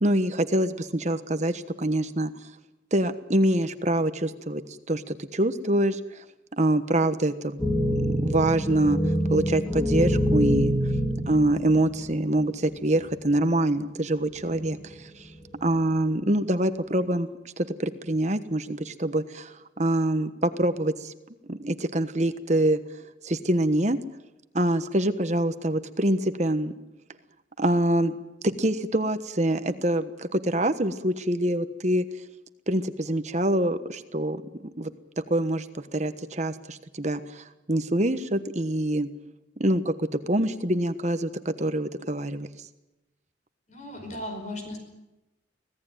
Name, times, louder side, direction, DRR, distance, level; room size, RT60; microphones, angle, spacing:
voice 1, 0.0-2.5 2.9-4.6 4.9-6.2 6.5-7.6 8.0-9.0 9.3-10.7 11.3-15.3 15.6-17.3 17.6-21.1 21.5-22.8 23.2-24.0 24.5-26.7 27.6-28.2 28.4-32.0 32.7-34.9 35.3-39.1 39.6-42.5, right 1 dB, 35° right, 10 dB, 1.2 m, -25 dB
sound 1, 7.6-12.4 13.1-13.2 14.4-14.9 15.6-16.0, equal, 5° left, 2.9 m, -26 dB
voice 2, 43.7-44.8, left 1 dB, 40° left, 5 dB, 5.0 m, -36 dB
25.0 x 17.5 x 9.2 m, 0.98 s
head